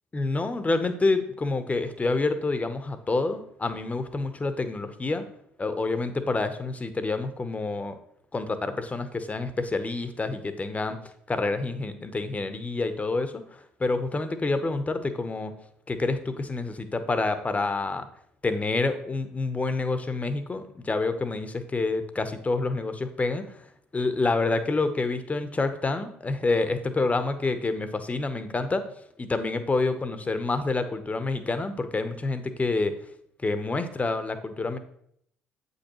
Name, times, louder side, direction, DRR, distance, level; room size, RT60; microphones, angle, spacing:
voice 1, 0.1-5.3 5.6-8.0 8.3-11.0 11.3-15.5 15.9-18.1 18.4-23.6 23.9-28.8 29.2-32.9 33.4-34.8, left 3 dB, 25° left, 10 dB, 0.8 m, -28 dB
8.0 x 5.4 x 3.0 m, 0.69 s
hypercardioid pair, 55°, 6 cm